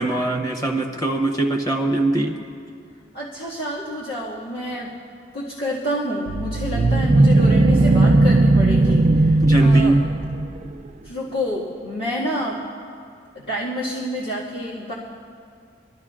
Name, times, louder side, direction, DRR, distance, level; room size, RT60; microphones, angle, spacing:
voice 1, 0.0-2.4 9.4-9.9, right 2 dB, 20° left, 1 dB, 0.9 m, -21 dB
voice 2, 3.1-4.9 5.3-10.0 11.0-12.6 13.4-14.9, equal, 55° left, -8 dB, 1.9 m, -28 dB
sound 1, 6.3-10.7, right 2 dB, 40° right, 0.4 m, -16 dB
26.0 x 12.0 x 2.5 m, 2.3 s
head